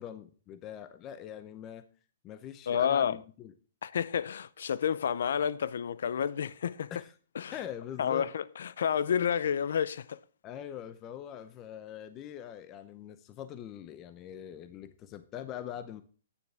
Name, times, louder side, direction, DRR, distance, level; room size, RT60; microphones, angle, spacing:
voice 1, 0.0-1.8 2.2-3.5 6.9-7.1 7.5-8.3 10.4-16.0, left 10 dB, 25° left, 0.7 m, -43 dB
voice 2, 2.7-3.2 3.8-6.9 7.4-7.6 8.0-8.4 8.8-10.2, left 8 dB, 70° left, 0.5 m, -29 dB
9.8 x 9.4 x 3.4 m
hypercardioid pair, 150°, 0 cm